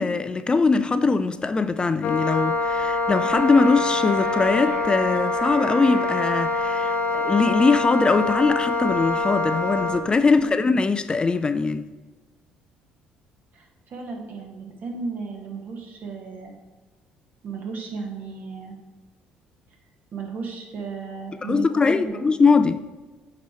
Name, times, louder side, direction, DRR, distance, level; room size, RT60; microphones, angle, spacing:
voice 1, 0.0-11.8 21.4-22.8, left 4 dB, 25° left, 0.3 m, -21 dB
Wind instrument woodwind instrument, 2.0-10.1, left 3 dB, 55° left, 0.6 m, -25 dB
Wind instrument woodwind instrument 2, 3.2-7.6, right 3 dB, 85° right, 1.1 m, -39 dB
voice 2, 10.3-10.6 13.5-16.5 17.4-18.8 20.1-22.2, right 4 dB, 55° right, 1.4 m, -35 dB
8.3 x 3.0 x 4.4 m
supercardioid pair, 70°, 4 cm